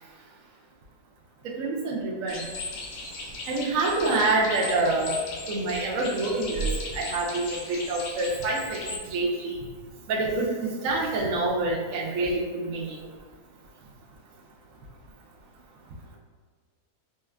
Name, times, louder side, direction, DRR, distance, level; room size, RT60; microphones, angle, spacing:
voice 1, 1.6-2.4 3.5-5.1 5.5-6.7 6.9-7.6 7.9-8.8 9.1-9.6 10.1-13.0, right 2 dB, 70° right, -3 dB, 0.9 m, -26 dB
sound 1, 2.3-9.0, left 3 dB, 80° left, 1.1 m, -37 dB
4.2 x 2.3 x 2.3 m, 1.5 s
omnidirectional pair, 1.6 m